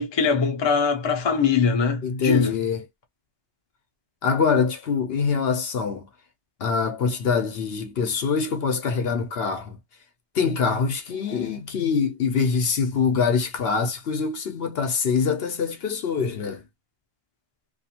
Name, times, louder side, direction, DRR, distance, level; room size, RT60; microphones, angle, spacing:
voice 1, 0.0-2.6, left 5 dB, 30° left, 0.5 m, -22 dB
voice 2, 2.0-2.8 4.2-6.1 6.6-9.8 10.3-16.6, left 5 dB, 65° left, 0.8 m, -24 dB
2.4 x 2.4 x 2.8 m
omnidirectional pair, 1.2 m